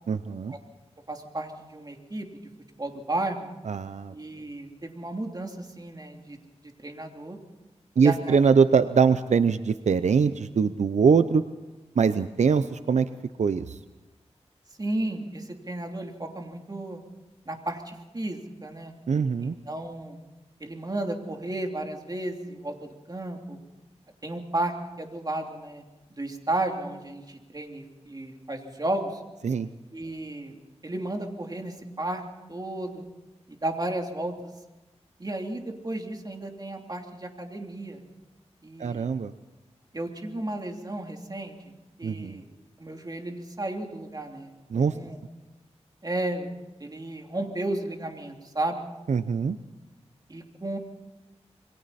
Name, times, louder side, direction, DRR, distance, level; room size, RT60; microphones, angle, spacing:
voice 1, 0.1-0.6 3.7-4.1 8.0-11.4 12.0-13.1 13.4-13.8 19.1-19.5 29.4-29.7 38.8-39.3 42.0-42.4 44.7-44.9 49.1-49.6, right 5 dB, 85° right, 12 dB, 0.7 m, -22 dB
voice 2, 1.1-2.3 2.7-3.5 4.1-6.4 6.6-7.4 8.0-8.4 14.8-17.0 17.5-18.9 19.4-20.2 20.6-23.6 24.2-25.8 26.1-29.2 29.9-30.5 30.8-32.2 32.5-33.1 33.5-34.5 35.2-38.0 38.6-39.1 39.9-41.5 42.0-42.4 42.8-45.2 46.0-46.5 46.8-48.8 50.3-50.8, right 1 dB, 35° right, 2 dB, 3.1 m, -33 dB
27.5 x 22.5 x 4.2 m, 1.1 s
wide cardioid pair, 75°, 12 cm